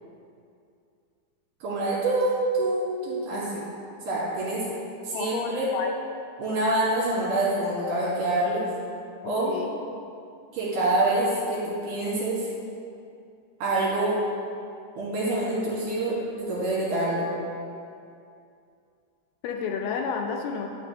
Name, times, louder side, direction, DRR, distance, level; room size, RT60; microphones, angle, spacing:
voice 1, 1.6-3.7 4.0-4.6 5.0-5.7 6.4-8.6 9.2-9.5 10.5-12.5 13.6-14.2 15.0-17.2, right 2 dB, 60° right, -8 dB, 3.1 m, -26 dB
voice 2, 5.1-5.9 9.2-9.8 19.4-20.7, left 5 dB, 80° left, 2 dB, 2.4 m, -31 dB
10.0 x 6.0 x 2.9 m, 2.5 s
omnidirectional pair, 4.7 m